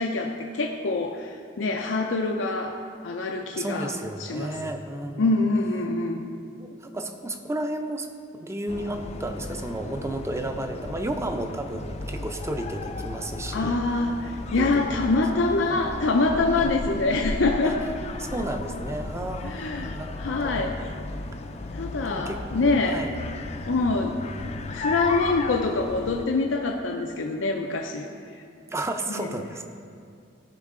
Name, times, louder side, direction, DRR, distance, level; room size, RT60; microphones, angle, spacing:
voice 1, 0.0-2.8 3.0-3.9 4.2-4.7 5.2-6.3 13.5-17.8 19.4-20.8 21.7-23.0 23.7-24.2 24.7-28.1 29.1-29.4, left 3 dB, 90° left, 2 dB, 0.5 m, -25 dB
voice 2, 3.5-5.3 6.6-8.1 8.3-13.8 14.6-15.1 15.6-15.8 16.5-16.7 17.6-17.8 18.2-20.8 22.1-23.1 28.7-29.7, right 1 dB, 15° right, 6 dB, 0.6 m, -33 dB
sound 1, 8.7-26.3, left 2 dB, 35° left, 0.4 m, -35 dB
14.5 x 5.5 x 3.7 m, 2.4 s
head